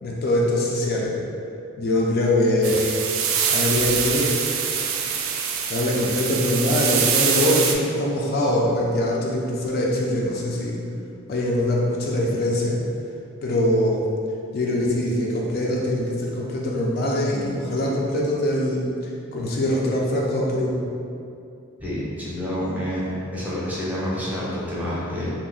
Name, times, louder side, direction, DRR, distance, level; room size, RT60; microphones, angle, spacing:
voice 1, 0.0-1.2 1.8-3.0 3.5-4.4 5.7-10.8 11.3-12.8 13.4-14.0 14.5-18.8 19.3-20.8, left 1 dB, 50° left, -3 dB, 0.4 m, -23 dB
sound 1, 2.6-7.7, right 7 dB, 80° right, 0.3 m, -24 dB
voice 2, 21.8-25.3, equal, 10° right, -8 dB, 0.6 m, -28 dB
2.7 x 2.0 x 3.8 m, 2.5 s
head